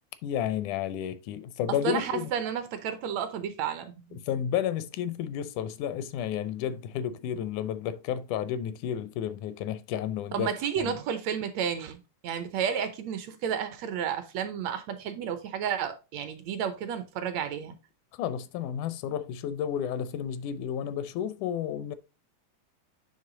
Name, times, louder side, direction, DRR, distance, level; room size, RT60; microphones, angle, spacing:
voice 1, 0.2-2.3 4.1-10.5 10.8-11.0 18.2-22.0, left 9 dB, 85° left, 2.1 m, -31 dB
voice 2, 1.8-3.9 10.3-17.7, right 8 dB, 70° right, 1.8 m, -31 dB
9.7 x 3.4 x 3.8 m
omnidirectional pair, 3.4 m